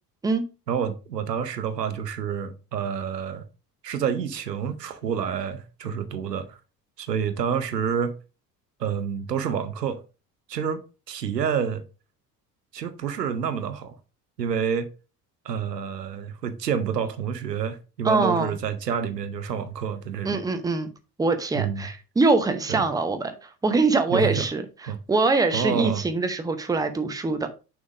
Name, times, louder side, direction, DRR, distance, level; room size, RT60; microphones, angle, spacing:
voice 1, 0.7-3.4 3.8-6.6 7.0-8.1 8.8-10.0 10.5-10.8 11.1-11.8 12.7-14.0 14.4-14.9 15.4-20.4 21.5-21.9 22.7-22.8 24.1-24.4 24.8-25.0 25.5-26.0, right 7 dB, 80° right, 0.8 m, -28 dB
voice 2, 18.0-18.5 20.2-20.9 21.2-24.6 25.1-27.5, right 3 dB, 10° right, 0.8 m, -23 dB
6.3 x 3.6 x 4.9 m
figure-of-eight pair, 60°, 48 cm